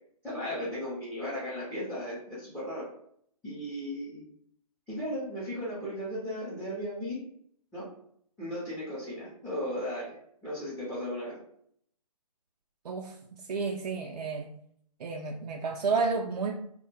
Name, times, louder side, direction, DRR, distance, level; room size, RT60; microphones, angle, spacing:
voice 1, 0.2-2.9 3.4-4.2 4.9-7.2 7.7-7.9 8.4-11.4, equal, 5° left, -9 dB, 0.6 m, -36 dB
voice 2, 12.8-13.2 13.5-14.5 15.0-16.5, right 4 dB, 80° right, 0 dB, 0.5 m, -31 dB
2.6 x 2.1 x 3.1 m, 0.66 s
hypercardioid pair, 150°, 20 cm